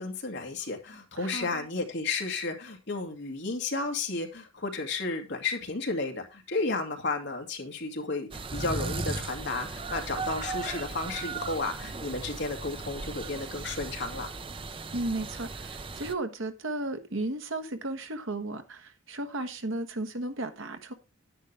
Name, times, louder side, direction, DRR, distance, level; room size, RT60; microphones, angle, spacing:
voice 1, 0.0-14.3, left 3 dB, 55° left, 2.3 m, -33 dB
voice 2, 1.2-1.6 14.9-20.9, right 2 dB, 65° right, 1.3 m, -34 dB
sound 1, 8.3-16.1, right 3 dB, 25° right, 0.6 m, -37 dB
10.0 x 9.9 x 3.4 m
head